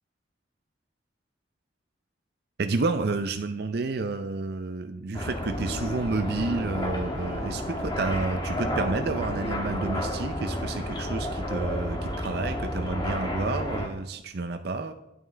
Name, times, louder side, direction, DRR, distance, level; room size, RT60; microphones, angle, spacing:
voice 1, 2.6-14.9, right 3 dB, 60° right, 8 dB, 0.5 m, -30 dB
sound 1, 5.1-13.9, equal, 25° left, 1.5 m, -31 dB
12.5 x 11.0 x 3.3 m, 0.89 s
head